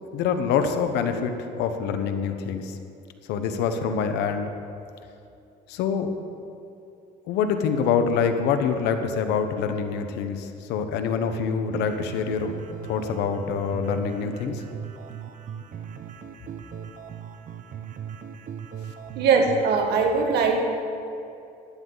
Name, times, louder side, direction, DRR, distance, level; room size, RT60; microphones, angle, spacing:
voice 1, 0.1-2.8 3.3-4.5 5.7-6.1 7.3-12.5 12.8-14.6, left 6 dB, 90° left, 7 dB, 1.1 m, -25 dB
sound 1, 11.7-19.7, right 8 dB, 50° right, 0.9 m, -39 dB
voice 2, 19.2-20.6, right 5 dB, 75° right, 2 dB, 1.8 m, -21 dB
15.5 x 11.5 x 4.0 m, 2.7 s
cardioid pair, 110°, 17 cm